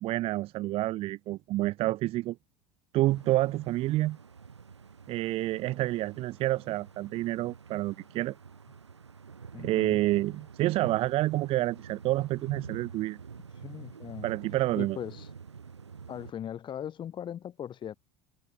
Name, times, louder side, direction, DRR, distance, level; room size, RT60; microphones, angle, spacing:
voice 1, 0.0-2.4 2.9-4.2 5.1-8.4 9.6-13.2 14.2-15.0, right 17 dB, 45° right, 0.5 m, -28 dB
sound 1, 3.1-16.3, right 6 dB, 85° right, 1.5 m, -47 dB
voice 2, 9.5-10.0 13.5-14.3 14.8-15.3 16.1-17.9, left 9 dB, 35° left, 1.4 m, -39 dB
figure-of-eight pair, 70°, 14 cm